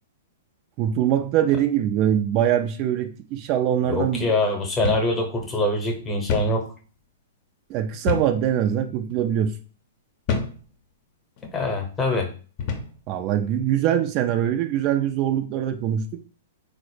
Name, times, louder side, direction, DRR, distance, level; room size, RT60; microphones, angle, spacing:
voice 1, 0.8-4.3 7.7-9.5 13.1-16.2, right 10 dB, 40° right, 6 dB, 0.3 m, -23 dB
voice 2, 3.9-6.7 11.5-12.3, left 2 dB, 20° left, 2 dB, 0.8 m, -24 dB
sound 1, 4.8-5.1 5.4-5.5 6.3-6.6 8.1-8.4 9.1-9.3 10.3-10.6 11.4-11.6 12.6-13.0, left 5 dB, 45° left, 0.6 m, -27 dB
3.9 x 2.0 x 3.2 m, 0.40 s
hypercardioid pair, 115°, 0 cm